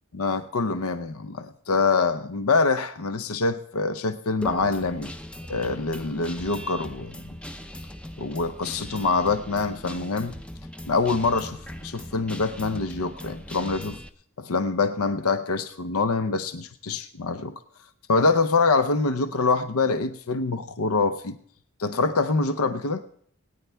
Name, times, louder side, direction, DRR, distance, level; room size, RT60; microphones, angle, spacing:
voice 1, 0.1-5.1 5.5-7.2 8.2-10.3 10.9-14.0 14.4-17.6 18.1-21.4 21.8-23.0, left 4 dB, 80° left, 11 dB, 0.7 m, -25 dB
Guitar, 4.4-14.1, left 1 dB, 5° left, 0.4 m, -39 dB
21.5 x 9.5 x 3.4 m, 0.62 s
head